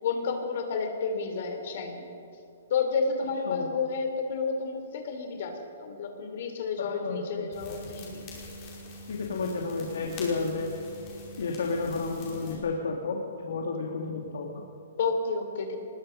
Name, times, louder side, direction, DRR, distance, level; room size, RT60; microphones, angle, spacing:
voice 1, 0.0-2.1 2.7-8.2 15.0-15.8, left 5 dB, 50° left, 5 dB, 3.3 m, -31 dB
voice 2, 6.8-7.5 9.1-10.7 11.4-14.6, left 4 dB, 75° left, 0 dB, 2.3 m, -31 dB
sound 1, 7.5-12.5, left 1 dB, 20° left, 5.2 m, -44 dB
24.5 x 21.0 x 5.4 m, 2.7 s
hypercardioid pair, 170°, 0 cm